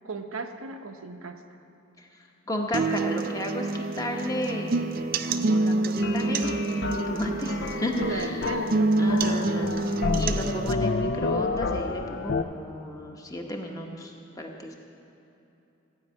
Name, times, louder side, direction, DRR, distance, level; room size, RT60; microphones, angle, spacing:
voice 1, 0.0-1.4 7.1-7.3 8.0-8.9, right 3 dB, 90° right, 5 dB, 0.9 m, -35 dB
voice 2, 2.5-4.8 5.3-6.6 6.8-8.3 9.0-14.8, left 1 dB, 15° left, 1 dB, 1.0 m, -33 dB
sound 1, 2.7-10.7, right 3 dB, 45° right, 0.4 m, -27 dB
sound 2, 6.0-12.4, left 3 dB, 50° left, 0.4 m, -30 dB
15.5 x 5.5 x 9.1 m, 2.9 s
head